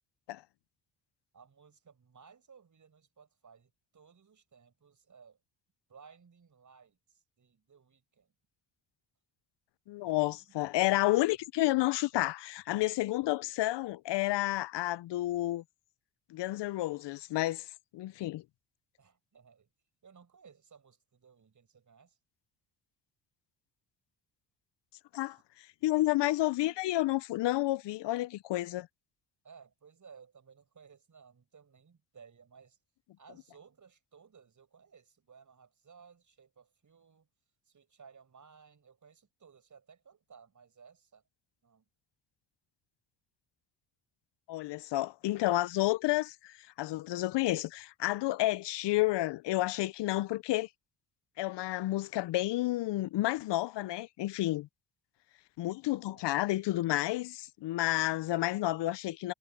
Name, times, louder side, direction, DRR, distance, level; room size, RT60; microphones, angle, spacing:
voice 1, 1.3-5.4 5.9-8.3 10.4-10.5 19.0-19.7 20.0-22.2 25.3-25.4 29.4-32.8 33.2-37.3 37.6-41.2 41.6-41.8 56.0-56.4, right 6 dB, 45° right, 6.8 m, -58 dB
voice 2, 9.9-15.6 16.3-17.7 17.9-18.4 25.1-25.4 25.8-28.9 44.5-50.7 51.4-54.7 55.6-59.3, left 17 dB, 70° left, 0.7 m, -30 dB
supercardioid pair, 65°, 43 cm